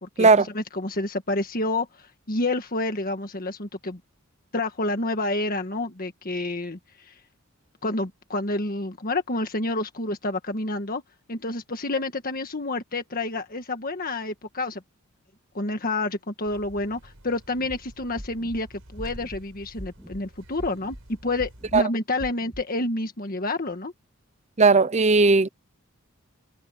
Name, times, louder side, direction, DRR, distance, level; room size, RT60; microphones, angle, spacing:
voice 1, 0.0-4.0 4.5-7.1 7.8-11.0 11.3-14.8 15.5-18.7 18.9-21.0 21.2-23.9, left 2 dB, 40° left, 1.7 m, -29 dB
sound 1, 16.5-21.8, equal, 65° right, 5.8 m, -49 dB
sound 2, 17.6-17.8 18.2-18.6 19.0-19.4 19.8-20.2 20.6-21.0 21.4-21.8 22.2-22.6, equal, 5° left, 2.1 m, -40 dB
voice 2, 24.6-25.5, right 4 dB, 30° right, 0.7 m, -17 dB
head